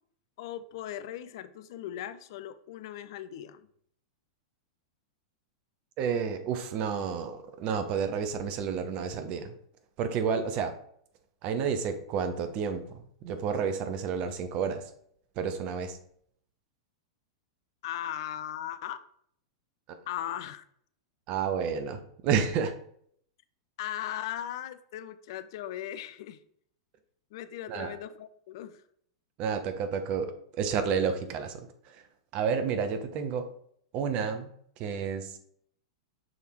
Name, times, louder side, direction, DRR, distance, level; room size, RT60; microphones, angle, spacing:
voice 1, 0.4-3.7 17.8-19.0 20.1-20.6 23.8-26.4 27.3-28.8, left 11 dB, 60° left, 13 dB, 0.4 m, -38 dB
voice 2, 6.0-9.5 10.0-10.7 11.4-14.8 15.4-16.0 21.3-22.7 27.7-28.0 29.4-32.0 32.3-33.5 33.9-34.5 34.8-35.4, right 6 dB, 45° right, 8 dB, 0.9 m, -30 dB
6.3 x 3.4 x 4.5 m, 0.65 s
hypercardioid pair, 105°, 3 cm